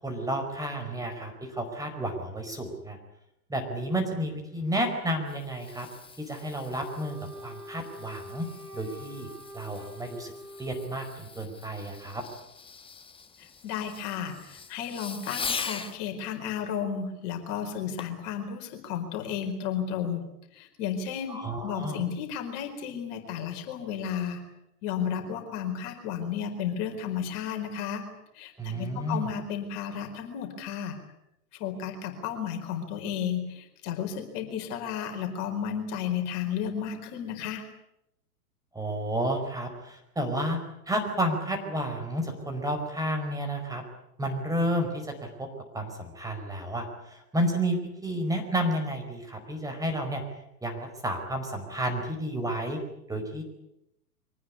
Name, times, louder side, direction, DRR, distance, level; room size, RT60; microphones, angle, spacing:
voice 1, 0.0-3.0 3.5-5.9 6.3-8.5 8.7-9.3 9.5-10.3 10.6-12.2 21.3-22.0 28.6-29.3 38.7-40.6 40.9-43.8 44.2-45.5 45.7-50.2 50.6-52.8 53.1-53.4, right 1 dB, 5° right, 3 dB, 5.0 m, -31 dB
Fireworks, 5.0-16.0 18.0-18.3 18.8-18.9, left 5 dB, 10° left, 1.5 m, -42 dB
Wind instrument woodwind instrument, 6.8-11.5, equal, 85° right, 3.9 m, -45 dB
voice 2, 13.4-20.2 20.5-24.4 24.8-28.0 28.3-31.0 31.6-37.6, left 8 dB, 40° left, 5 dB, 4.6 m, -33 dB
24.0 x 19.0 x 9.8 m, 0.83 s
figure-of-eight pair, 105°, 47 cm